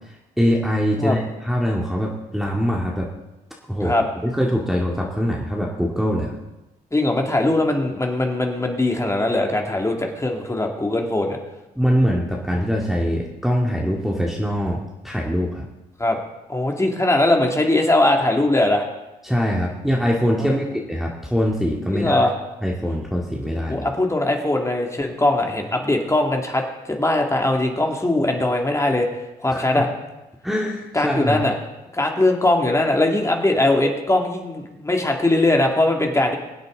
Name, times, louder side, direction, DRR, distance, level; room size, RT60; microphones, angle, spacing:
voice 1, 0.4-3.1 3.7-3.9 4.2-6.3 11.8-15.7 19.2-22.2 22.6-23.9 29.5-29.8 30.4-31.5, equal, ahead, -3 dB, 1.9 m, -23 dB
voice 2, 6.9-11.4 16.0-16.2 16.5-18.8 20.4-20.6 21.9-22.3 23.7-26.6 26.9-29.1 29.4-29.9 30.9-31.5 31.9-36.4, left 2 dB, 15° left, 2 dB, 2.4 m, -20 dB
22.5 x 8.0 x 3.9 m, 1.0 s
supercardioid pair, 60°, 18 cm